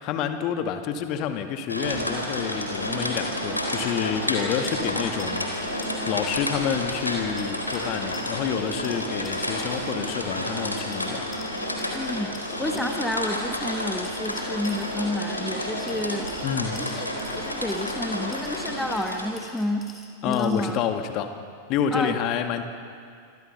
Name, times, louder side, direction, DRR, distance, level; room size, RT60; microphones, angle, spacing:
voice 1, 0.0-5.5 5.7-11.2 16.4-16.8 20.2-21.3 21.7-22.6, left 8 dB, 40° left, 6 dB, 2.2 m, -28 dB
sound 1, 1.7-19.6, left 1 dB, 85° left, 3.7 m, -30 dB
sound 2, 4.6-6.1 6.4-6.5 7.4-8.6 8.8-10.0 10.9-13.1 14.0-15.1 15.9-18.0 18.3-20.7, left 3 dB, 20° left, 4.4 m, -46 dB
voice 2, 11.9-16.3 16.8-17.1 17.3-19.9 20.2-20.8 21.9-22.2, left 1 dB, 5° left, 4 dB, 1.4 m, -30 dB
27.0 x 25.5 x 5.7 m, 2.3 s
figure-of-eight pair, 90°, 0 cm